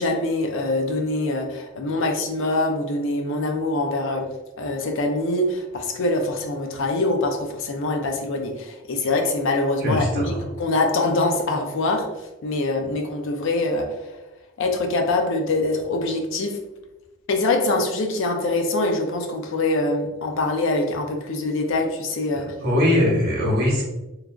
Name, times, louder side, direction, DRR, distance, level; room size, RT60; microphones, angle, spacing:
voice 1, 0.0-4.2 4.6-14.1 14.6-16.6 17.3-22.5, left 2 dB, 65° left, 3 dB, 0.5 m, -24 dB
voice 2, 9.8-10.4 22.3-23.8, left 1 dB, 50° right, -3 dB, 0.9 m, -21 dB
3.1 x 2.4 x 2.3 m, 1.0 s
head